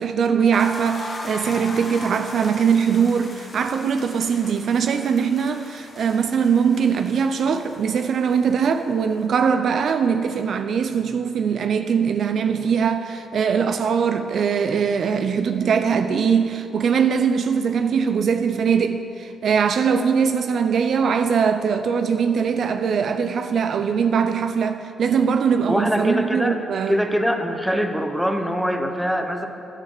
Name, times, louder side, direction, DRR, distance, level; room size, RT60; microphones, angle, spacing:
voice 1, 0.0-27.0, right 6 dB, 65° right, 0.5 m, -21 dB
sound 1, 0.5-9.3, left 2 dB, 35° left, 1.6 m, -39 dB
voice 2, 25.7-26.6 26.9-29.5, equal, ahead, 1.1 m, -23 dB
10.5 x 8.9 x 6.7 m
cardioid pair, 80°, 0 cm